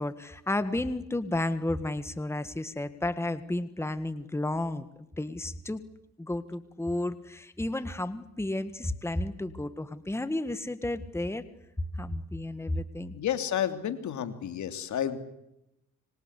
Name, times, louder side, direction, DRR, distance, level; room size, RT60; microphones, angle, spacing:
voice 1, 0.0-4.9 5.2-5.8 6.2-11.4 11.9-13.1, left 1 dB, 10° left, 12 dB, 1.7 m, -32 dB
voice 2, 13.1-15.2, left 10 dB, 70° left, 9 dB, 3.2 m, -31 dB
26.0 x 25.5 x 8.4 m, 0.85 s
cardioid pair, 90°, 30 cm